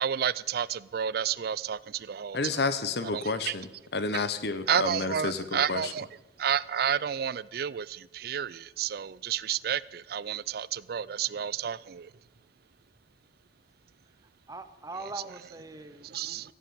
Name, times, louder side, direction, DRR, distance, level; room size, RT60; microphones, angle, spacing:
voice 1, 0.0-2.6 3.0-3.5 4.1-4.2 4.7-6.1 6.4-12.1 16.0-16.5, right 8 dB, 60° right, 0.4 m, -31 dB
voice 2, 2.3-5.9, left 3 dB, 65° left, 1.1 m, -31 dB
voice 3, 14.5-16.5, right 2 dB, 20° right, 1.0 m, -42 dB
16.5 x 7.8 x 8.8 m
head